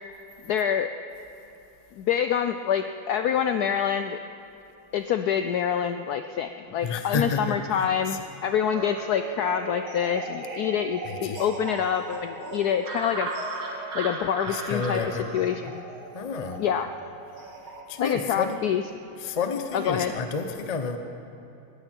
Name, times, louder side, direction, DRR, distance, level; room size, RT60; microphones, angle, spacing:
voice 1, 0.5-0.9 2.0-4.2 4.9-13.3 13.9-15.8 16.6-16.9 18.0-18.8 19.7-20.1, left 8 dB, 90° left, 8 dB, 0.8 m, -26 dB
voice 2, 6.8-8.2 11.0-11.4 14.5-15.3 16.1-16.6 17.9-18.6 19.2-21.0, left 5 dB, 45° left, 7 dB, 0.5 m, -30 dB
sound 1, 8.7-17.8, right 3 dB, 80° right, 2.5 m, -37 dB
20.5 x 15.0 x 4.5 m, 2.8 s
omnidirectional pair, 2.2 m